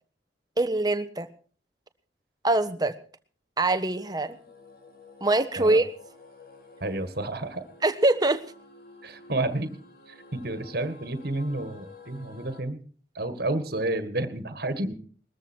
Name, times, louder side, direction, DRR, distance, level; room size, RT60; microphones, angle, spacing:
voice 1, 0.6-1.3 2.4-2.9 3.6-4.4 5.2-5.9 7.8-8.4, right 2 dB, 20° right, 10 dB, 1.3 m, -23 dB
sound 1, 3.8-12.6, left 3 dB, 50° left, 3.9 m, -51 dB
voice 2, 6.8-7.6 9.0-9.7 10.1-12.8 13.1-14.9, right 2 dB, 55° right, 10 dB, 1.9 m, -30 dB
21.0 x 14.0 x 4.6 m, 0.42 s
head